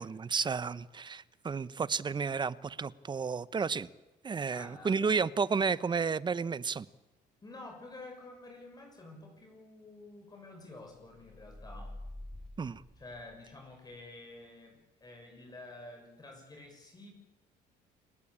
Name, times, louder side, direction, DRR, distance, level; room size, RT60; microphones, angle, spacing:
voice 1, 0.0-3.9 4.2-6.9 12.6-12.8, right 5 dB, 25° right, 18 dB, 0.8 m, -32 dB
voice 2, 4.5-5.1 7.4-11.9 13.0-17.1, left 2 dB, 25° left, 2 dB, 6.7 m, -49 dB
sound 1, 11.1-13.7, left 1 dB, ahead, 3.9 m, -47 dB
29.0 x 17.5 x 8.6 m, 1.0 s
cardioid pair, 110°, 17 cm